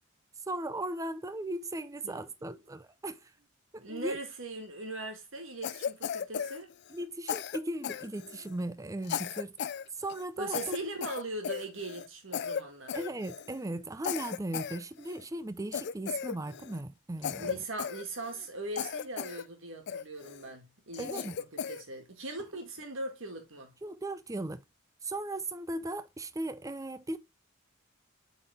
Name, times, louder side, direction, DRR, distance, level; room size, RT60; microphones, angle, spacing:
voice 1, 0.5-3.3 3.7-4.2 6.9-9.5 10.0-10.7 12.9-17.6 21.0-21.4 23.8-24.6 25.0-27.2, right 1 dB, 15° right, 0.5 m, -37 dB
voice 2, 3.8-6.7 10.4-13.0 17.3-23.8, right 2 dB, 65° right, 2.0 m, -40 dB
Cough, 5.6-7.0 7.3-8.6 9.0-9.8 10.1-10.2 10.5-12.1 12.3-12.6 12.9-13.6 14.0-15.2 15.7-16.8 17.2-18.5 18.8-19.4 19.9-20.4 20.9-21.8, left 8 dB, 55° left, 0.4 m, -36 dB
7.9 x 4.1 x 3.4 m
head